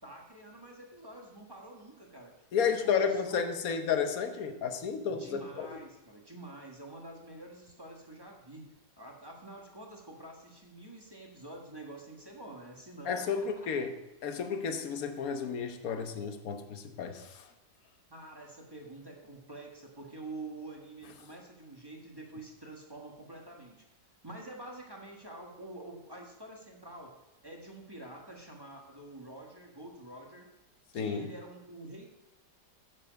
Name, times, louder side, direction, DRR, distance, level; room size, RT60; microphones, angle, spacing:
voice 1, 0.0-3.5 5.1-8.6 9.0-13.7 18.1-23.8 24.2-27.1 27.4-30.5 30.9-32.0, right 2 dB, 15° right, 0 dB, 1.2 m, -47 dB
voice 2, 2.5-5.8 13.0-13.9 14.2-17.4 30.9-31.3, left 6 dB, 55° left, 7 dB, 1.2 m, -32 dB
10.0 x 7.5 x 5.1 m, 0.98 s
omnidirectional pair, 2.0 m